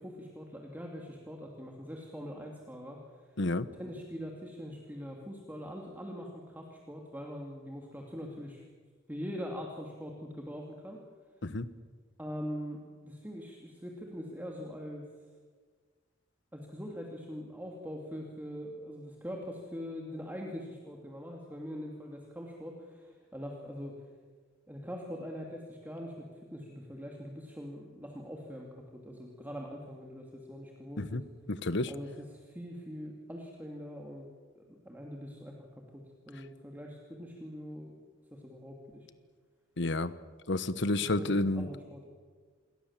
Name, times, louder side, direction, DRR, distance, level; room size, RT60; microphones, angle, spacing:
voice 1, 0.0-3.3 3.7-8.6 9.1-11.0 12.2-15.1 16.5-23.9 24.7-31.3 31.9-34.3 34.5-37.9 38.3-39.1 41.0-42.1, equal, 10° right, 0 dB, 2.8 m, -43 dB
voice 2, 31.5-31.9 39.8-40.1 40.5-41.7, left 2 dB, 65° left, 14 dB, 1.2 m, -30 dB
28.0 x 22.0 x 7.5 m, 1.5 s
head